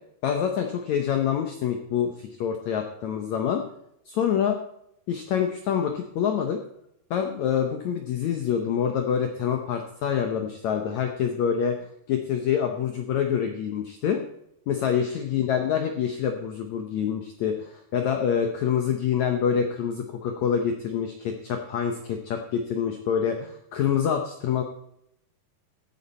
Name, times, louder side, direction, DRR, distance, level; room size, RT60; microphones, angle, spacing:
voice 1, 0.2-3.6 4.1-4.6 5.1-6.6 7.1-11.7 12.1-14.2 14.7-24.6, left 8 dB, 85° left, 5 dB, 1.6 m, -26 dB
14.5 x 8.5 x 4.3 m, 0.76 s
omnidirectional pair, 4.6 m